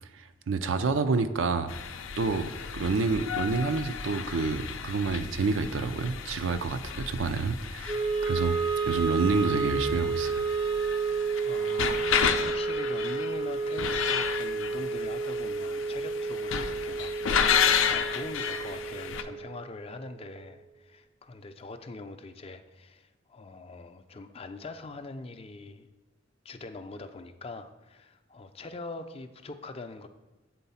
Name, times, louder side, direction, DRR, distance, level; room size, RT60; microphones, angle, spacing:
voice 1, 0.1-1.7 2.2-8.6 8.8-10.5, right 4 dB, 75° right, 0.5 m, -28 dB
sound 1, 1.7-19.2, left 7 dB, 80° left, 0.5 m, -32 dB
Wind instrument woodwind instrument, 7.9-20.1, right 4 dB, 25° right, 0.5 m, -31 dB
voice 2, 11.5-25.9 26.4-30.1, left 3 dB, 30° left, 0.4 m, -43 dB
8.2 x 3.9 x 5.6 m
head